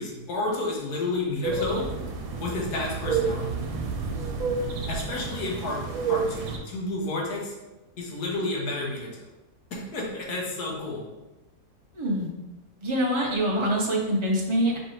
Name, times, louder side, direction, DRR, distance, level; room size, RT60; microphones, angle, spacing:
voice 1, 0.0-1.9 2.4-3.5 4.9-5.8 6.1-7.5 8.0-9.3 9.7-11.0, left 2 dB, 75° left, -1 dB, 1.5 m, -31 dB
sound 1, 1.4-6.6, right 4 dB, 75° right, 1.1 m, -30 dB
voice 2, 11.9-12.3 12.8-14.8, equal, 40° right, -2 dB, 0.4 m, -25 dB
5.2 x 3.3 x 3.0 m, 1.0 s
omnidirectional pair, 1.7 m